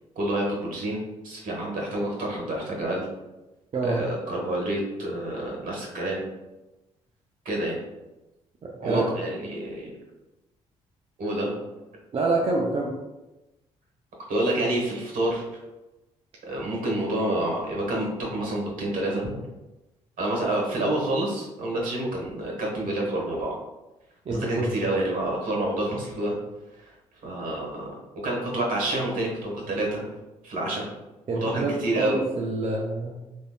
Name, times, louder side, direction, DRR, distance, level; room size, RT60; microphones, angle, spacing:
voice 1, 0.1-3.1 3.8-6.2 7.4-7.8 8.8-9.9 11.2-11.5 14.3-15.4 16.5-19.3 20.2-23.6 24.3-26.4 26.8-26.9 27.2-27.9 28.2-30.0 30.4-30.9 31.3-32.2, right 1 dB, 55° right, -1 dB, 1.2 m, -28 dB
voice 2, 3.7-4.0 8.6-9.0 12.1-12.9 24.3-24.7 31.3-33.3, right 3 dB, 35° right, -2 dB, 0.5 m, -27 dB
3.3 x 2.6 x 2.2 m, 1.0 s
hypercardioid pair, 50°, 16 cm